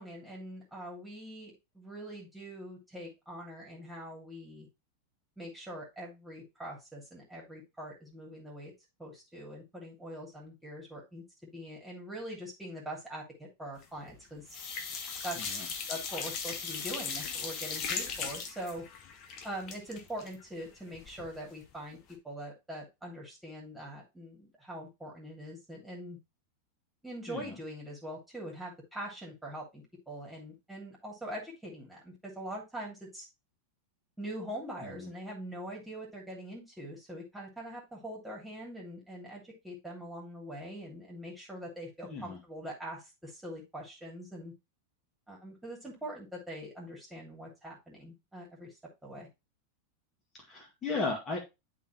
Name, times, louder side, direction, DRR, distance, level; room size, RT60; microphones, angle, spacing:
voice 1, 0.0-4.7 5.4-8.7 9.0-11.2 11.5-14.4 15.2-15.4 15.9-18.8 19.4-22.0 22.2-26.2 27.0-33.3 34.2-44.5 45.3-48.7 49.0-49.3, right 1 dB, 5° right, -3 dB, 2.8 m, -43 dB
sound 1, 13.8-14.2 14.5-21.4 21.7-21.8 22.1-22.2, left 5 dB, 35° left, 1.2 m, -38 dB
voice 2, 42.0-42.4 50.5-51.4, left 3 dB, 20° left, -1 dB, 2.0 m, -36 dB
11.0 x 3.9 x 3.0 m, 0.24 s
figure-of-eight pair, 90°, 0 cm